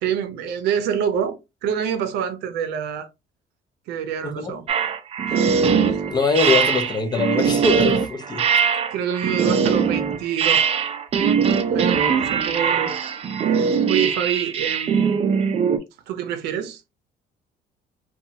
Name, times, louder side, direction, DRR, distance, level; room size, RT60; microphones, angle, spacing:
voice 1, 0.0-3.1 3.9-4.6 5.3-5.4 5.8-6.0 8.9-10.7 11.7-13.0 13.4-15.2 16.1-16.8, right 8 dB, 90° right, 0.5 m, -27 dB
sound 1, 4.7-15.8, right 6 dB, 35° right, 0.4 m, -21 dB
voice 2, 6.1-8.5, left 3 dB, 25° left, 0.5 m, -22 dB
2.8 x 2.3 x 2.7 m
cardioid pair, 110°, 17 cm